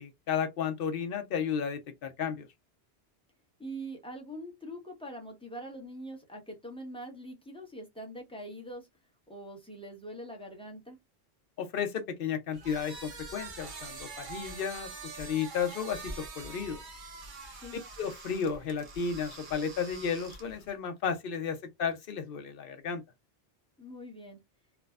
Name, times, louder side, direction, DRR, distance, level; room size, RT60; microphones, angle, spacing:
voice 1, 0.0-2.5 11.6-16.8 18.0-23.0, left 7 dB, 65° left, 0.8 m, -33 dB
voice 2, 3.6-8.9 9.3-11.0 17.5-17.8 23.8-24.4, right 1 dB, 5° left, 0.7 m, -43 dB
sound 1, 12.5-20.7, right 3 dB, 55° right, 0.8 m, -45 dB
3.2 x 2.0 x 2.3 m
omnidirectional pair, 1.1 m